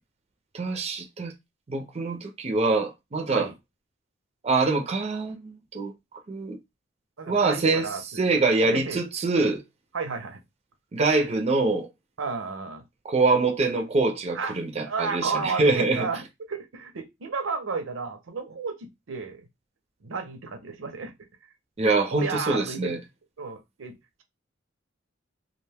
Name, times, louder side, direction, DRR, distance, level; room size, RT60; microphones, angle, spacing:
voice 1, 0.5-1.3 1.7-3.5 4.4-5.9 6.3-6.6 7.3-7.9 8.2-9.6 10.9-11.9 13.0-16.1 21.8-23.0, right 3 dB, 30° right, 0.5 m, -24 dB
voice 2, 7.2-8.2 8.7-9.0 9.9-10.4 12.2-12.8 14.3-14.6 14.8-19.5 20.0-21.1 22.1-23.0 23.4-24.2, right 4 dB, 75° right, 0.6 m, -32 dB
2.4 x 2.2 x 3.3 m
head